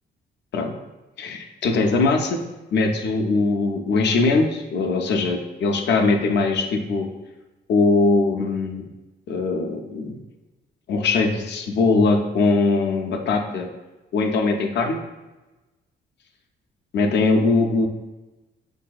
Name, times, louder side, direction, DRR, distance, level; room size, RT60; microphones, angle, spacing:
voice 1, 1.2-2.4 2.7-7.1 7.7-8.8 9.3-10.2 10.9-13.7 14.1-15.0 16.9-17.9, left 3 dB, 60° left, 4 dB, 0.5 m, -21 dB
3.9 x 2.6 x 2.3 m, 1.1 s
cardioid pair, 90°, 20 cm